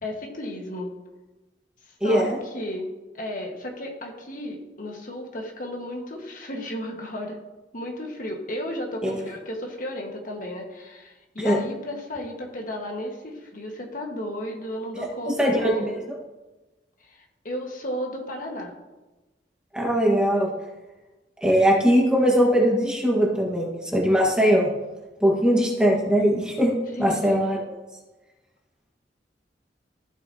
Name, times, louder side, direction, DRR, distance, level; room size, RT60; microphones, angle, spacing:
voice 1, 0.0-0.9 2.0-2.9 3.2-7.4 7.7-16.0 17.0-18.7 27.0-27.4, left 1 dB, 50° left, 1 dB, 1.5 m, -34 dB
voice 2, 2.0-2.3 9.0-9.2 11.4-11.6 14.9-15.9 19.7-20.5 21.4-24.7 25.2-26.7 27.0-27.8, equal, 5° right, -2 dB, 1.4 m, -21 dB
14.5 x 5.7 x 2.8 m, 1.1 s
head